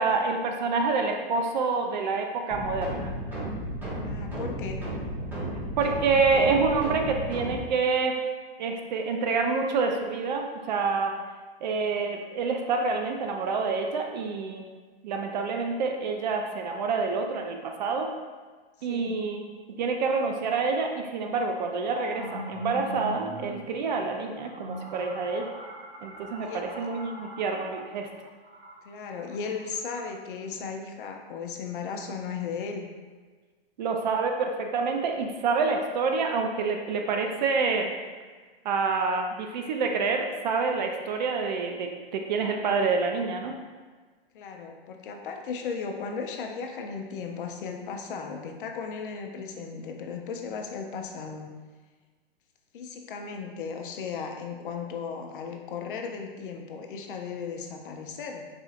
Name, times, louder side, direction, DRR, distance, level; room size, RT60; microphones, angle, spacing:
voice 1, 0.0-3.1 5.8-8.2 8.6-11.1 11.6-14.6 15.0-18.1 18.8-19.4 19.8-25.5 26.0-28.1 33.8-37.9 38.6-43.5, right 4 dB, 45° right, 3 dB, 0.4 m, -27 dB
sound 1, 2.5-7.6, equal, 5° right, 0.6 m, -33 dB
voice 2, 4.0-4.9 18.9-19.2 26.4-26.9 28.8-32.9 44.3-51.5 52.7-58.5, left 5 dB, 55° left, 3 dB, 0.5 m, -36 dB
sound 2, 21.5-30.0, equal, 85° right, 0.9 m, -41 dB
4.1 x 2.6 x 2.4 m, 1.4 s
hypercardioid pair, 140°, 31 cm